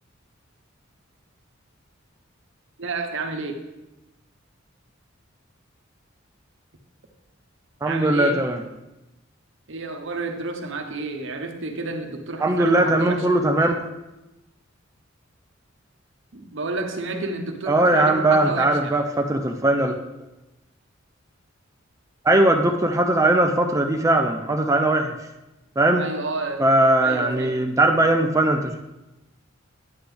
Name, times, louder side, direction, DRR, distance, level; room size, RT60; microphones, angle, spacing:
voice 1, 2.8-3.6 7.9-8.4 9.7-13.3 16.3-19.0 26.0-26.7 27.0-27.6, right 3 dB, 65° right, 4 dB, 1.0 m, -30 dB
voice 2, 7.8-8.6 12.4-13.7 17.7-19.9 22.2-25.1 25.8-26.0 26.6-28.8, right 1 dB, 15° right, 3 dB, 0.5 m, -19 dB
9.6 x 8.0 x 3.3 m, 0.98 s
head